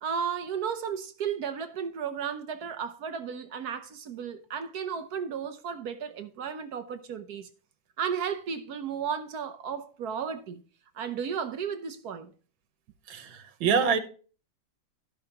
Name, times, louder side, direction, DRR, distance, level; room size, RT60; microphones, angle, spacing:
voice 1, 0.0-7.5 8.0-10.6 10.9-12.3, right 7 dB, 60° right, 1.1 m, -34 dB
voice 2, 13.1-14.0, right 6 dB, 85° right, 1.8 m, -25 dB
16.5 x 5.6 x 2.9 m
omnidirectional pair, 2.1 m